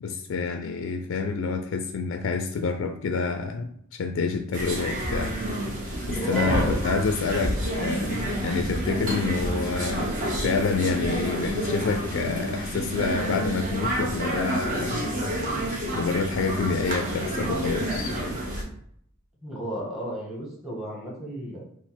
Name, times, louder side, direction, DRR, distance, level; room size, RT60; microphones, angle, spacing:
voice 1, 0.0-5.3 6.1-15.1 15.9-18.2, left 4 dB, 65° left, 5 dB, 0.3 m, -28 dB
sound 1, 4.5-18.6, right 1 dB, 40° right, 0.9 m, -29 dB
voice 2, 6.1-6.8 19.4-21.6, equal, ahead, -3 dB, 1.1 m, -32 dB
4.1 x 2.0 x 4.3 m, 0.68 s
head